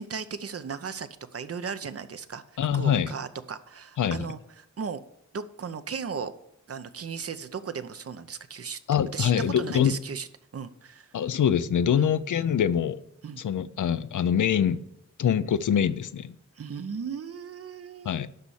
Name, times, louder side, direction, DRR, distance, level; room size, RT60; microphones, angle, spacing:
voice 1, 0.0-2.4 2.7-5.0 5.3-6.3 6.7-8.8 9.1-10.3 10.5-11.1 11.9-12.1 13.2-13.4 16.6-18.3, right 6 dB, 50° right, 0.8 m, -36 dB
voice 2, 2.6-3.1 4.0-4.3 8.9-10.0 11.1-13.0 13.4-14.8 15.2-16.3 18.0-18.3, left 8 dB, 90° left, 0.6 m, -24 dB
12.0 x 4.2 x 8.1 m
wide cardioid pair, 120°, 30 cm